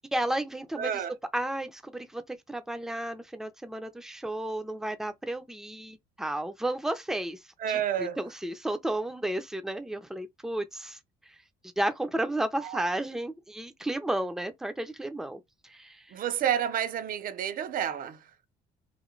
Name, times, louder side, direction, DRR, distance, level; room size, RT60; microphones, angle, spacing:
voice 1, 0.1-0.9 1.3-7.4 7.7-11.0 11.8-16.0, right 1 dB, 5° right, 0.6 m, -33 dB
voice 2, 0.8-1.1 7.6-8.2 12.6-12.8 16.1-18.2, right 9 dB, 55° right, 0.7 m, -30 dB
3.1 x 2.7 x 3.8 m
cardioid pair, 110°, 17 cm